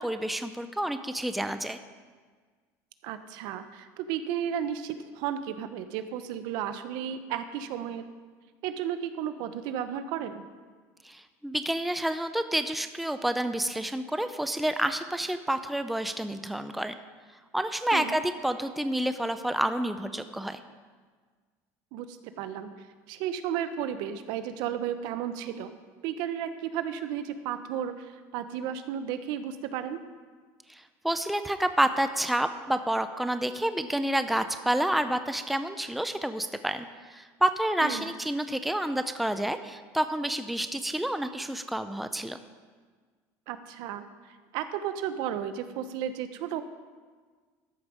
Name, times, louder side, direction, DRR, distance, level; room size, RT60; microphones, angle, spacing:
voice 1, 0.0-1.8 11.0-16.9 17.5-20.6 30.7-42.4, right 1 dB, ahead, 9 dB, 0.5 m, -29 dB
voice 2, 3.0-8.1 8.6-10.4 17.9-18.2 21.9-22.7 23.1-25.7 26.0-28.1 28.3-30.0 37.8-38.1 43.5-44.0 44.5-46.6, right 9 dB, 70° right, 10 dB, 0.8 m, -33 dB
13.5 x 5.2 x 6.3 m, 1.5 s
cardioid pair, 125°, 8 cm